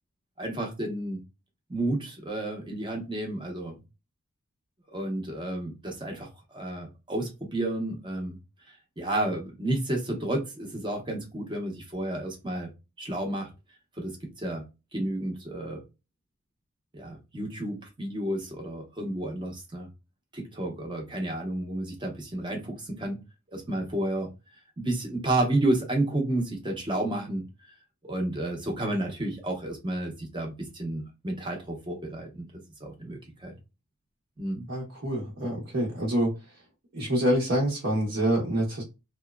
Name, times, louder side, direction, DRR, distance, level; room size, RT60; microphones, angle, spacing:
voice 1, 0.4-1.2 1.7-3.8 4.9-8.4 9.0-12.7 13.0-13.5 14.0-14.6 14.9-15.8 16.9-19.9 20.3-23.2 23.5-24.3 24.8-27.4 28.0-32.5 32.8-33.5 34.4-34.6, right 1 dB, 20° right, 0.8 m, -31 dB
voice 2, 34.7-36.6 36.9-38.8, right 1 dB, 55° right, 0.9 m, -27 dB
2.8 x 2.1 x 2.2 m
head